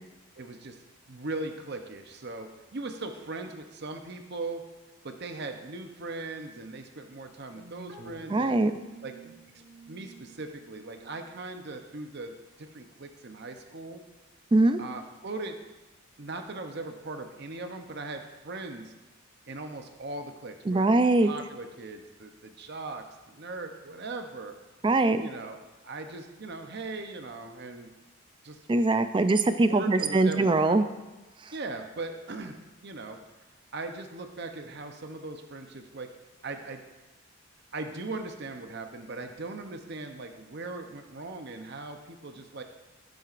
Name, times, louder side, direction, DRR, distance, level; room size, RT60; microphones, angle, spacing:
voice 1, 0.4-0.8 1.1-4.6 5.0-8.7 9.0-9.4 9.9-14.0 14.8-15.6 16.2-18.9 19.5-24.6 25.2-27.9 28.4-28.6 29.6-30.9 31.5-33.2 33.7-36.1 36.4-36.8 37.7-42.6, right 3 dB, 50° right, 6 dB, 0.7 m, -39 dB
sound 1, 7.5-11.8, right 3 dB, 65° right, 1.9 m, -50 dB
voice 2, 8.3-8.7 14.5-14.8 20.7-21.3 24.8-25.2 28.7-30.9, right 2 dB, 20° right, 10 dB, 0.4 m, -22 dB
13.5 x 7.7 x 2.5 m, 1.1 s
head